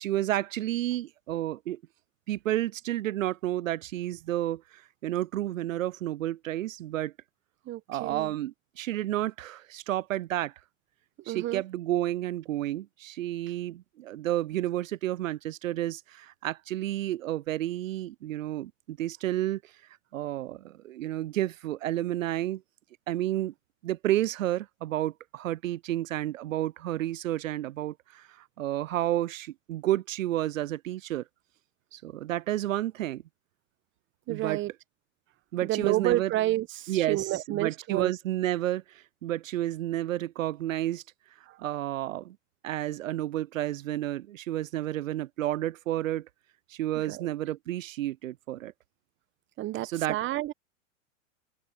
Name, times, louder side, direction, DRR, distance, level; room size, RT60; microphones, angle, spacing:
voice 1, 0.0-1.8 2.3-7.1 7.9-10.5 11.3-19.7 20.1-22.6 23.1-23.5 23.8-31.2 31.9-33.2 34.3-34.6 35.5-36.3 36.9-41.0 41.6-42.4 42.6-46.3 46.7-48.7 49.8-50.2, right 14 dB, 85° right, 0.6 m, -31 dB
voice 2, 7.7-8.3 11.3-11.6 34.3-34.7 35.6-38.1 41.5-41.6 47.0-47.3 49.6-50.5, right 15 dB, 30° right, 1.0 m, -30 dB
open air
hypercardioid pair, 105°, 38 cm